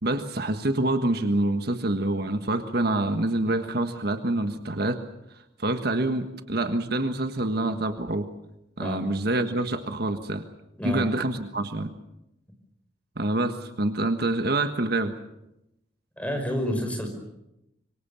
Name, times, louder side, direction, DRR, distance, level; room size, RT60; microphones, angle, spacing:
voice 1, 0.0-5.0 5.6-8.3 8.8-10.4 10.8-11.9 13.2-15.2, right 2 dB, 55° right, 8 dB, 1.5 m, -26 dB
voice 2, 16.2-17.1, equal, 5° left, 4 dB, 5.4 m, -29 dB
26.0 x 24.0 x 7.0 m, 0.87 s
head